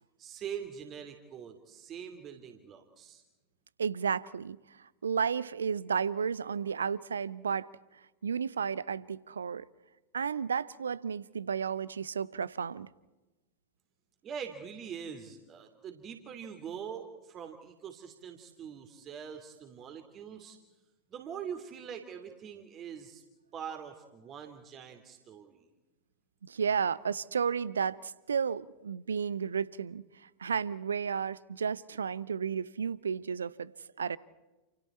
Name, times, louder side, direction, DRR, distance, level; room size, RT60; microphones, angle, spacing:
voice 1, 0.2-3.2 14.2-20.6 21.1-23.2 23.5-25.7, right 7 dB, 30° right, 2.8 m, -43 dB
voice 2, 3.8-4.6 5.0-7.7 8.2-9.7 10.1-12.9 26.4-30.0 30.4-33.7 34.0-34.2, right 6 dB, 70° right, 0.7 m, -32 dB
29.0 x 28.5 x 4.3 m
figure-of-eight pair, 90°, 0 cm